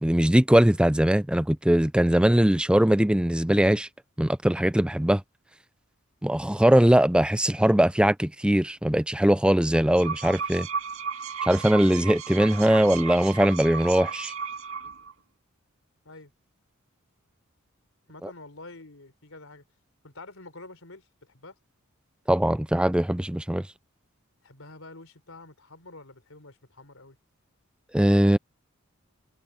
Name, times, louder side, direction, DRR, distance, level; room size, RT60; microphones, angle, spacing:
voice 1, 0.0-3.9 4.2-5.2 6.2-10.7 11.4-14.3 18.2-18.3 22.3-23.6 27.9-28.4, right 1 dB, 5° right, 0.4 m, -21 dB
sound 1, 9.7-15.1, right 6 dB, 65° right, 2.7 m, -34 dB
voice 2, 18.1-19.6 20.0-21.6 24.4-27.2, left 2 dB, 65° left, 4.4 m, -47 dB
head